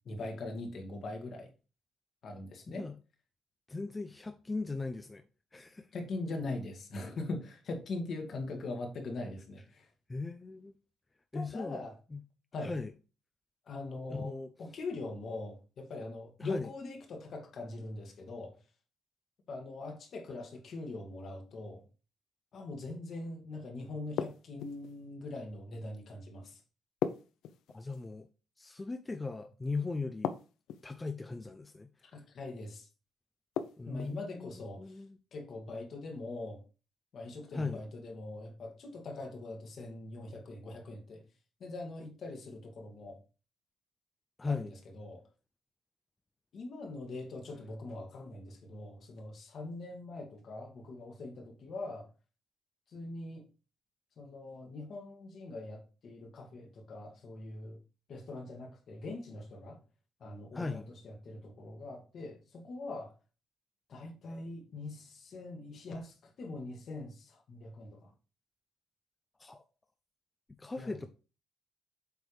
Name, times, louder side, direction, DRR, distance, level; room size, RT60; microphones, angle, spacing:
voice 1, 0.1-1.5 2.2-2.8 5.9-9.9 11.3-11.9 12.5-12.7 13.7-18.6 19.5-21.8 22.5-26.6 32.0-32.9 33.9-34.9 35.3-36.6 37.1-41.2 41.6-43.2 44.5-44.7 44.9-45.2 46.5-52.1 52.9-53.4 54.2-57.8 58.1-59.8 60.2-63.1 63.9-68.1 70.8-71.1, left 2 dB, 60° left, 2.0 m, -42 dB
voice 2, 3.7-5.2 5.5-5.9 7.0-7.1 10.1-10.7 11.3-11.8 12.1-12.2 12.6-12.9 14.1-14.5 16.4-16.7 27.7-28.3 28.6-30.3 30.8-31.9 33.8-35.2 37.5-37.8 44.4-44.7 60.5-60.9 69.4-69.6 70.6-71.1, left 3 dB, 20° left, 0.6 m, -38 dB
sound 1, 24.2-25.0 27.0-28.1 30.2-31.0 33.6-34.2, left 9 dB, 85° left, 0.5 m, -36 dB
7.9 x 3.5 x 4.8 m
cardioid pair, 90°, 0 cm